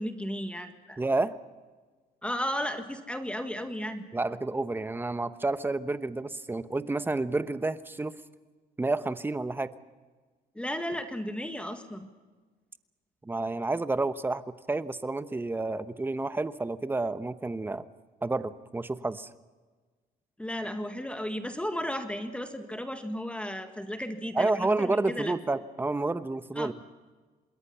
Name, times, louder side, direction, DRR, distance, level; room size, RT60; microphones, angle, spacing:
voice 1, 0.0-1.0 2.2-4.0 10.6-12.1 20.4-25.3 26.6-26.7, equal, 5° left, 7 dB, 1.7 m, -34 dB
voice 2, 1.0-1.4 4.1-8.1 8.8-9.7 13.2-17.9 18.2-19.3 24.3-26.7, right 2 dB, 10° right, 13 dB, 1.0 m, -30 dB
27.0 x 21.0 x 5.7 m, 1.4 s
cardioid pair, 110°, 17 cm